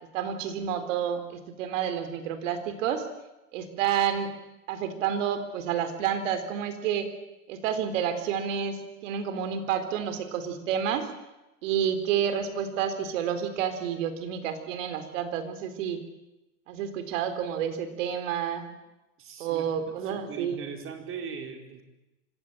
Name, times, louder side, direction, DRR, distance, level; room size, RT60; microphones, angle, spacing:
voice 1, 0.1-3.0 3.5-4.3 4.7-7.1 7.5-11.1 11.6-16.0 16.7-18.7 19.4-20.6, right 8 dB, 70° right, 10 dB, 3.9 m, -29 dB
voice 2, 19.2-21.8, right 6 dB, 30° right, 5 dB, 4.6 m, -40 dB
25.0 x 16.5 x 9.1 m, 0.98 s
supercardioid pair, 125°, 39 cm